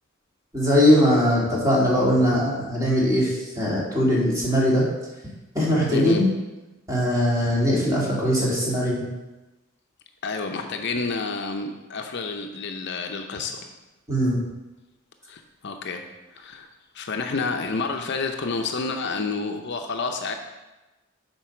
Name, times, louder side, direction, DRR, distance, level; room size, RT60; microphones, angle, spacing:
voice 1, 0.5-4.8 5.5-6.3 6.9-9.0 14.1-14.4, equal, 15° right, -6 dB, 2.3 m, -20 dB
voice 2, 5.9-6.2 10.2-13.7 15.3-16.1 16.3-16.7 16.9-20.3, left 4 dB, 55° left, 5 dB, 0.6 m, -29 dB
7.6 x 4.6 x 5.8 m, 1.1 s
head